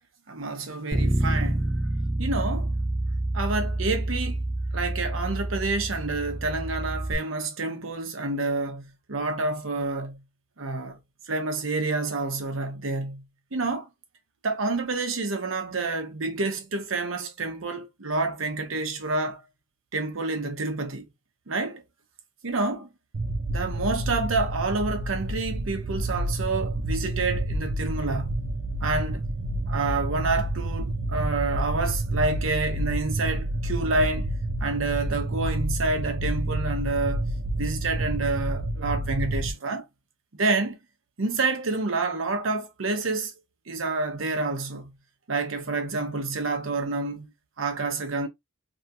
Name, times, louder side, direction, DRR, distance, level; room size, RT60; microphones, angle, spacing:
voice 1, 0.3-1.7 2.2-2.7 3.3-4.4 4.7-10.2 10.6-11.0 11.3-13.2 13.5-13.9 14.4-19.4 19.9-21.1 21.5-21.8 22.4-22.9 23.5-28.4 28.8-29.3 29.7-34.3 34.6-37.3 37.6-39.8 40.3-40.8 41.2-43.3 43.7-44.9 45.3-47.3 47.6-48.3, right 3 dB, 90° right, 0.9 m, -28 dB
Bass guitar, 0.9-7.2, right 1 dB, 15° right, 0.9 m, -28 dB
sound 1, 23.1-39.5, right 1 dB, 65° right, 0.4 m, -29 dB
2.9 x 2.8 x 2.5 m
head